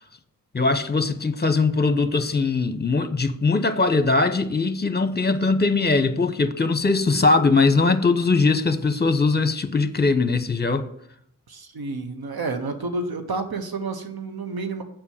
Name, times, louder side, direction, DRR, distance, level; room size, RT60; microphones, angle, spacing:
voice 1, 0.5-10.9, left 3 dB, 30° left, 0.9 m, -21 dB
voice 2, 11.5-14.8, right 3 dB, 90° right, 1.1 m, -30 dB
7.3 x 5.3 x 7.1 m
cardioid pair, 45°, 36 cm